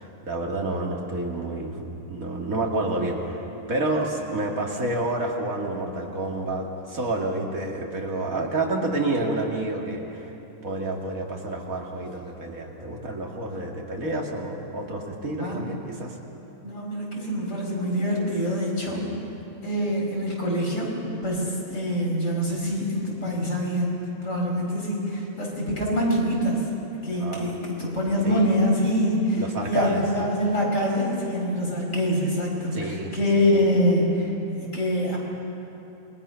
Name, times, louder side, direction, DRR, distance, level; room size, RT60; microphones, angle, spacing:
voice 1, 0.0-3.4 3.7-10.3 10.6-16.1 18.9-19.1 27.2-27.5 28.2-28.5 29.4-30.0 32.7-33.1, right 2 dB, 90° right, 0 dB, 2.7 m, -29 dB
voice 2, 16.6-19.0 19.6-20.9 21.2-26.7 27.0-34.3 34.6-35.2, equal, 70° left, -2 dB, 5.2 m, -25 dB
27.0 x 21.0 x 5.8 m, 2.9 s
omnidirectional pair, 1.4 m